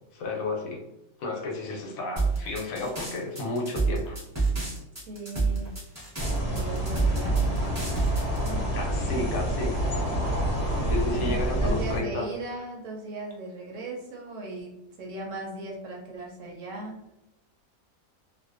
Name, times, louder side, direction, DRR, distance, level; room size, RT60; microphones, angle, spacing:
voice 1, 0.1-0.8 1.2-4.2 8.7-9.7 10.8-12.3, left 2 dB, 75° left, 0 dB, 1.0 m, -32 dB
sound 1, 2.2-8.5, right 4 dB, 15° right, 0.6 m, -27 dB
voice 2, 5.0-5.7 6.4-8.1 8.4-9.3 11.0-14.7 15.0-17.0, right 2 dB, 65° right, -2 dB, 0.9 m, -38 dB
sound 2, 6.2-12.0, equal, 50° left, 0.4 m, -28 dB
2.5 x 2.2 x 2.4 m, 0.90 s
omnidirectional pair, 1.5 m